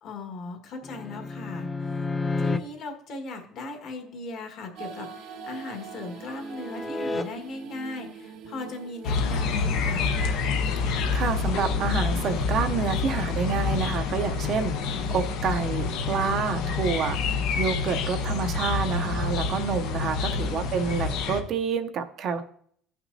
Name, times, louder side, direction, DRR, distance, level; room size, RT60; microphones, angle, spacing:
voice 1, 0.0-10.1 20.0-20.5, left 2 dB, 55° left, 4 dB, 1.6 m, -38 dB
sound 1, 0.8-2.6 5.3-7.2 10.7-10.9, left 3 dB, 15° left, 0.5 m, -32 dB
sound 2, 4.8-16.6, right 6 dB, 70° right, 1.0 m, -45 dB
sound 3, 9.0-21.4, left 5 dB, 80° left, 1.0 m, -27 dB
voice 2, 10.8-17.2 17.6-22.4, right 6 dB, 45° right, 7 dB, 0.6 m, -28 dB
16.5 x 6.0 x 2.7 m, 0.62 s
cardioid pair, 160°, 0 cm